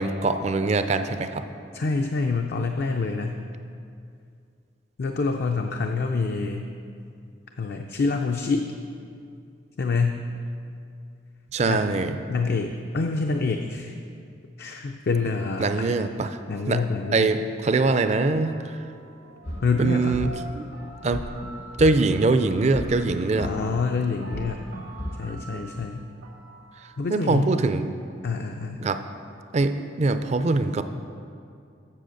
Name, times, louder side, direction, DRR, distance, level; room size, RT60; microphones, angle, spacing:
voice 1, 0.0-1.4 11.5-12.2 15.6-16.4 16.7-16.8 17.1-18.8 19.8-20.6 21.0-21.2 21.8-23.5 25.5-25.6 27.1-27.9 28.8-29.0 29.5-30.8, right 3 dB, 35° right, 10 dB, 0.4 m, -23 dB
voice 2, 1.7-3.4 5.0-6.7 7.6-8.7 9.8-10.2 11.7-11.9 12.3-13.9 14.6-16.0 16.5-17.3 19.6-20.2 23.4-24.7 25.2-26.1 27.0-27.5 28.2-28.8, left 4 dB, 55° left, 4 dB, 0.4 m, -26 dB
sound 1, 17.8-27.1, right 2 dB, 90° right, 1.7 m, -46 dB
sound 2, 19.4-25.4, left 1 dB, 70° left, 1.0 m, -37 dB
7.6 x 7.0 x 6.4 m, 2.4 s
head